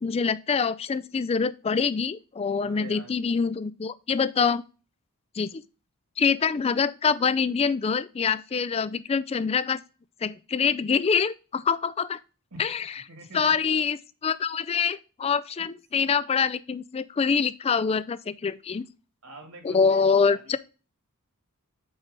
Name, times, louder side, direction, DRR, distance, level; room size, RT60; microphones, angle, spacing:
voice 1, 0.0-4.6 5.4-5.6 6.2-9.8 10.2-12.2 12.6-12.9 13.3-18.8 19.6-20.6, left 5 dB, 25° left, 0.3 m, -25 dB
voice 2, 2.6-3.1 12.5-12.6 13.1-13.6 15.6-15.7 19.2-20.6, right 2 dB, 75° right, 2.3 m, -45 dB
5.5 x 4.6 x 5.2 m
head